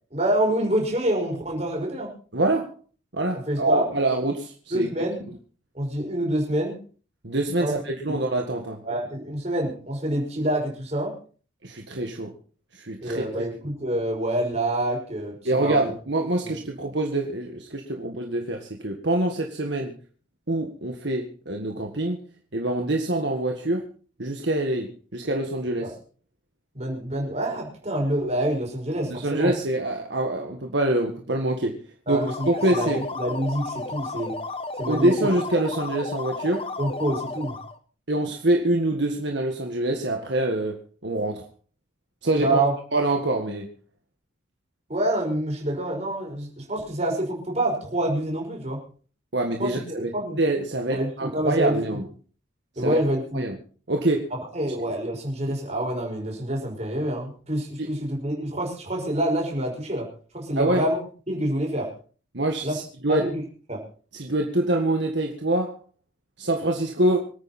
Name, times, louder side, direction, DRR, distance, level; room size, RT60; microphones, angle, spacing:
voice 1, 0.1-2.1 3.5-3.9 4.7-5.2 5.7-6.8 7.6-7.7 8.1-8.2 8.8-11.1 13.0-15.9 16.4-16.5 25.8-25.9 26.7-29.5 32.1-34.4 34.8-35.3 36.8-37.6 42.4-42.7 44.9-48.8 49.6-50.4 50.9-52.0 52.8-53.4 54.3-60.1 60.3-61.0 61.3-61.9 62.6-62.7 63.1-63.3 63.7-63.8, right 1 dB, 35° right, 0 dB, 5.7 m, -27 dB
voice 2, 2.3-2.7 3.1-4.9 7.2-8.8 11.6-12.3 12.7-13.2 15.5-19.9 20.5-22.2 22.5-23.8 24.2-25.9 29.1-31.8 32.1-33.0 34.9-36.6 38.1-40.8 41.0-41.5 42.2-42.6 42.9-43.7 49.3-50.1 50.4-52.0 52.8-53.0 53.3-53.6 53.9-54.3 57.8-57.9 60.6-60.8 62.3-63.2 64.1-65.8 66.4-67.2, right 1 dB, 60° right, 2 dB, 1.7 m, -25 dB
sound 1, 32.1-37.8, left 3 dB, 30° left, 1.0 m, -33 dB
26.0 x 9.2 x 4.3 m, 0.42 s
head